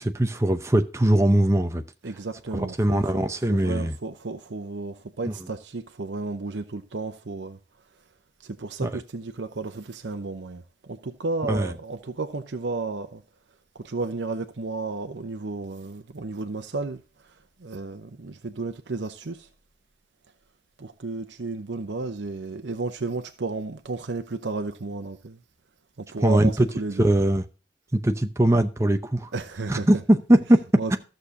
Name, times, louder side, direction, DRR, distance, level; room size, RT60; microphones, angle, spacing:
voice 1, 0.0-1.8 2.5-3.9 5.2-5.3 8.8-8.9 11.5-11.7 26.2-26.7 27.0-27.4 27.9-29.3 29.7-30.6 30.9-31.0, right 1 dB, 15° right, 0.7 m, -21 dB
voice 2, 2.0-7.6 8.4-13.2 13.7-17.0 17.6-19.5 20.8-25.4 26.0-27.1 29.3-30.0 30.8-30.9, right 3 dB, 90° right, 0.8 m, -33 dB
14.0 x 6.5 x 2.7 m
head